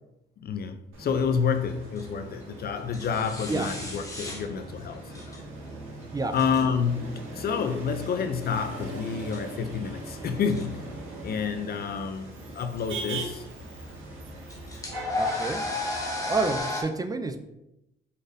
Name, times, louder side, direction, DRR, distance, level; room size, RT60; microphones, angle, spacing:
voice 1, 0.4-5.4 6.3-10.9 11.2-13.5, left 6 dB, 50° left, 8 dB, 0.4 m, -29 dB
Motor vehicle (road), 0.9-16.6, right 2 dB, 75° right, 1.6 m, -40 dB
sound 1, 1.6-16.8, left 2 dB, 15° left, 1.0 m, -35 dB
voice 2, 15.2-15.7 16.3-17.4, right 3 dB, 20° right, 8 dB, 0.4 m, -28 dB
4.9 x 4.0 x 2.6 m, 0.89 s
cardioid pair, 90°, 20 cm